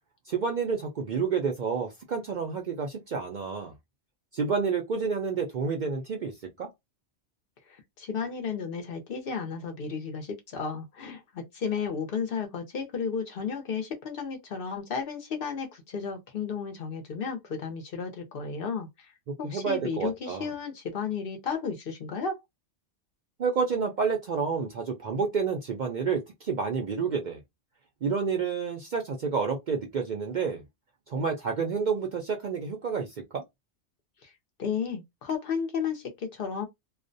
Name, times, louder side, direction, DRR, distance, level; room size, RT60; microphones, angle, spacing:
voice 1, 0.3-3.7 4.3-6.3 6.6-6.7 19.4-20.5 23.4-27.4 28.0-30.6 31.1-33.1 33.3-33.4, right 5 dB, 60° right, 0.5 m, -29 dB
voice 2, 7.7-19.1 19.4-22.4 34.2-34.3 34.6-36.7, left 6 dB, 60° left, 0.7 m, -33 dB
2.4 x 2.1 x 2.5 m
omnidirectional pair, 1.2 m